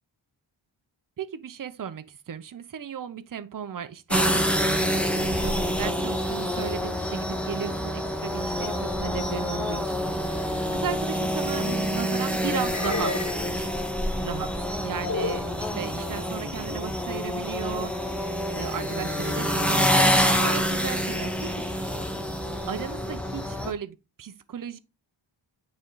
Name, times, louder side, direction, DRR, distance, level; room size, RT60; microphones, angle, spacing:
voice 1, 1.2-13.2 14.2-21.7 22.7-24.8, right 8 dB, 40° right, 0.7 m, -36 dB
sound 1, 4.1-23.7, equal, ahead, 0.9 m, -27 dB
sound 2, 11.2-12.0 12.7-13.5 15.0-15.5, left 3 dB, 35° left, 1.1 m, -32 dB
9.2 x 3.4 x 3.9 m
wide cardioid pair, 110°, 50 cm